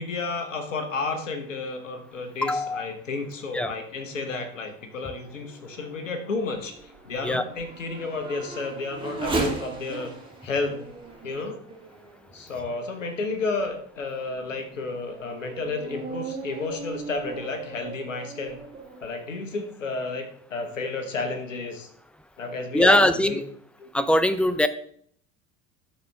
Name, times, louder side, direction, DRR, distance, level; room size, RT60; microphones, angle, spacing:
voice 1, 0.0-10.1 10.4-10.8 11.2-11.6 12.3-18.6 19.0-21.9 22.4-23.4 23.8-23.9, left 3 dB, 85° left, 7 dB, 1.2 m, -31 dB
voice 2, 2.4-2.9 3.5-3.7 7.2-7.4 22.7-23.4 23.9-24.7, left 1 dB, 5° left, 13 dB, 0.5 m, -21 dB
Race car auto racing / Accelerating revving vroom, 5.2-13.0 13.6-13.7 14.3-19.1, right 3 dB, 15° right, 2.1 m, -37 dB
12.5 x 4.3 x 3.5 m, 0.62 s
hypercardioid pair, 70°, 37 cm